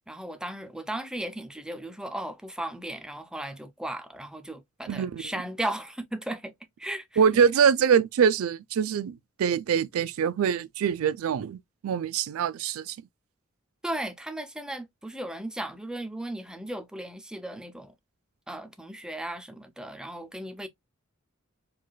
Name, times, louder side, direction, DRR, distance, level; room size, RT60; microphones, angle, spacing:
voice 1, 0.1-6.5 6.8-7.2 13.8-17.9 18.5-20.7, right 1 dB, 5° right, 0.4 m, -36 dB
voice 2, 4.9-5.2 7.2-13.0, right 7 dB, 75° right, 0.4 m, -24 dB
4.7 x 2.3 x 2.2 m
head